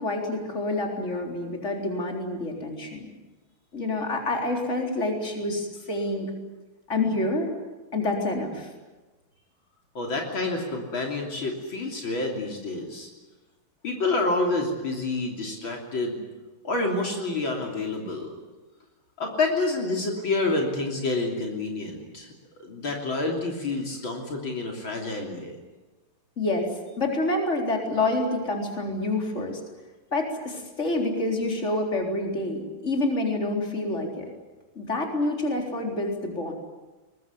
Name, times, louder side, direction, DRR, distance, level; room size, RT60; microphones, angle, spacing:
voice 1, 0.0-3.0 3.7-6.3 6.9-7.5 7.9-8.7 26.4-26.7 27.0-29.6 30.1-34.3 34.8-36.5, left 2 dB, 30° left, 2 dB, 4.4 m, -27 dB
voice 2, 10.0-13.1 13.8-16.2 16.6-18.3 19.2-22.3 22.6-25.5, left 2 dB, 60° left, 1 dB, 3.9 m, -28 dB
23.0 x 21.0 x 9.6 m, 1.2 s
omnidirectional pair, 2.4 m